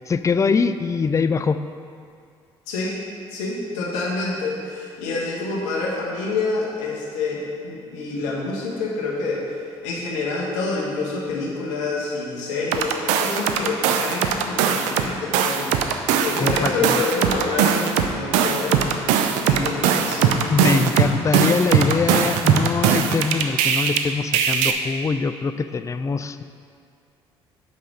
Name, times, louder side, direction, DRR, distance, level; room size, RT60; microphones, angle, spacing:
voice 1, 0.1-1.6 16.4-17.0 20.5-26.4, left 4 dB, 25° left, 11 dB, 0.4 m, -23 dB
voice 2, 2.7-3.0 3.3-9.5 9.8-15.7 16.2-18.8 19.4-20.5, left 3 dB, 75° left, -3 dB, 1.5 m, -27 dB
sound 1, 12.7-15.1 15.3-24.0 24.3-24.7, right 8 dB, 70° right, 0.5 m, -20 dB
5.6 x 5.5 x 6.5 m, 2.4 s
hypercardioid pair, 55°, 13 cm